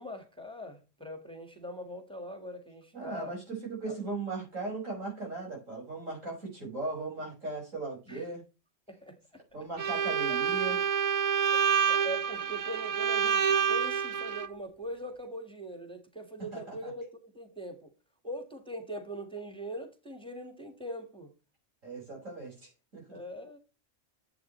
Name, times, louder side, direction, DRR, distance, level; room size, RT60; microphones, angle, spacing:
voice 1, 0.0-3.4 3.9-4.0 8.1-8.3 8.9-9.4 10.3-10.4 11.4-17.9 18.2-21.3 23.1-23.6, equal, 5° left, 1.6 m, -42 dB
voice 2, 2.9-8.4 9.5-10.8 16.5-16.8 21.8-23.2, right 3 dB, 85° right, 6.1 m, -38 dB
Bowed string instrument, 9.8-14.5, right 7 dB, 70° right, 0.3 m, -28 dB
11.5 x 8.0 x 3.1 m
omnidirectional pair, 1.3 m